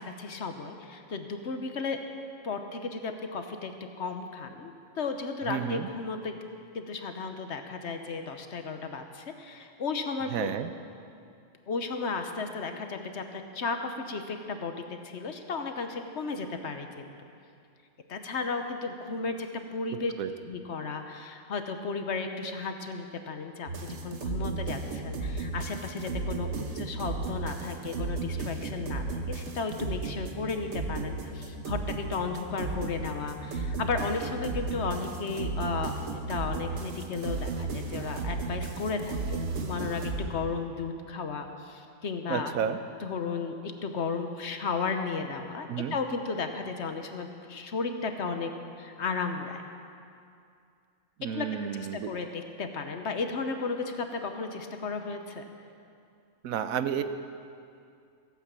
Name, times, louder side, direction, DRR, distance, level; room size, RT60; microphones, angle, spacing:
voice 1, 0.0-2.0 2.4-3.7 4.0-6.4 6.7-10.5 11.7-14.7 15.0-17.1 18.1-20.1 20.5-23.7 24.0-26.5 26.7-35.9 36.3-42.5 43.0-48.5 48.8-49.6 51.2-55.4, left 4 dB, 55° left, 6 dB, 1.2 m, -34 dB
voice 2, 5.5-5.9 10.3-10.7 20.2-20.3 42.3-42.8 45.7-46.0 51.2-52.1 56.4-57.0, right 8 dB, 80° right, 10 dB, 1.1 m, -31 dB
sound 1, 23.7-40.2, right 3 dB, 55° right, 1.3 m, -34 dB
16.0 x 8.4 x 7.4 m, 2.4 s
omnidirectional pair, 1.4 m